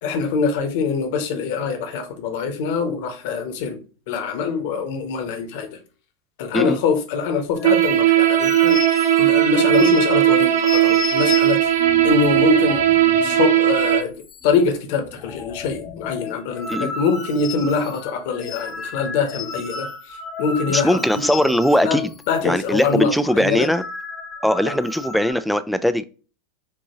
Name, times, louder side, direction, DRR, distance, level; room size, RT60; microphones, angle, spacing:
voice 1, 0.0-3.8 4.1-5.8 6.4-8.8 9.2-11.6 12.0-12.8 13.2-14.1 14.4-21.0 21.8-23.7 24.6-24.8, left 5 dB, 55° left, 1.1 m, -23 dB
sound 1, 7.6-13.5 13.8-13.9 14.2-14.8 15.1-22.4 22.7-22.9 23.4-25.3, left 5 dB, 30° left, 0.8 m, -33 dB
sound 2, 7.6-14.0, right 13 dB, 60° right, 0.5 m, -17 dB
voice 2, 20.7-22.1 22.4-23.8 24.4-26.1, equal, ahead, 0.4 m, -20 dB
6.9 x 2.7 x 2.9 m
figure-of-eight pair, 85°, 0 cm